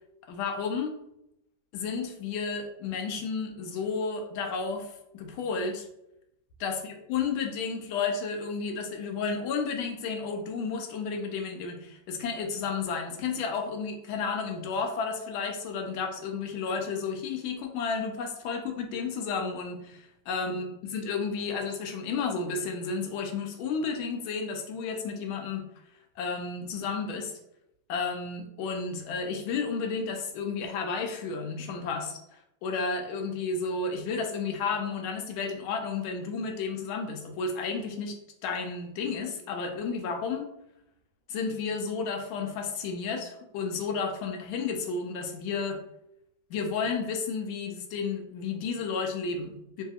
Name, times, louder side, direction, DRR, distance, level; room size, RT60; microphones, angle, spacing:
voice 1, 0.3-1.0 1.7-5.9 6.6-25.7 26.2-27.3 27.9-38.1 38.4-40.5 41.3-45.8 46.5-49.8, left 5 dB, 90° left, 3 dB, 1.4 m, -32 dB
3.3 x 2.7 x 2.3 m, 0.82 s
omnidirectional pair, 2.2 m